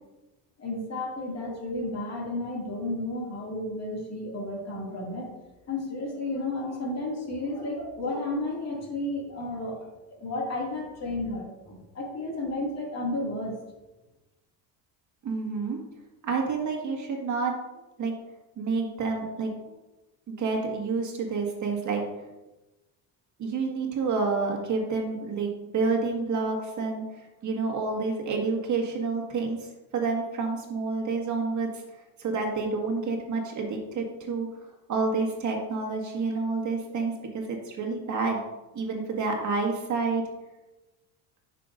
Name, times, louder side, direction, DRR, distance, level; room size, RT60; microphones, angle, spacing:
voice 1, 0.6-5.3 5.7-9.8 10.1-13.6, left 2 dB, 35° left, -2 dB, 2.4 m, -32 dB
voice 2, 15.2-15.8 16.2-17.5 18.0-18.1 18.6-19.7 20.3-22.0 23.4-31.7 32.2-34.5 34.9-38.4 38.7-40.2, right 4 dB, 40° right, 0 dB, 1.8 m, -29 dB
9.9 x 6.0 x 2.6 m, 1.1 s
cardioid pair, 125°, 44 cm